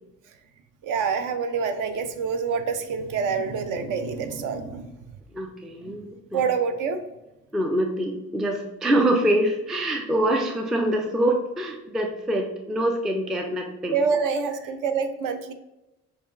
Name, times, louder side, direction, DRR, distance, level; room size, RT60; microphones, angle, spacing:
voice 1, 0.8-4.9 5.9-6.0 6.3-7.0 13.9-15.5, right 5 dB, 50° right, 8 dB, 0.5 m, -26 dB
voice 2, 5.3-6.4 7.5-14.0, right 1 dB, ahead, 4 dB, 0.3 m, -25 dB
6.7 x 2.4 x 2.4 m, 0.94 s
figure-of-eight pair, 45°, 42 cm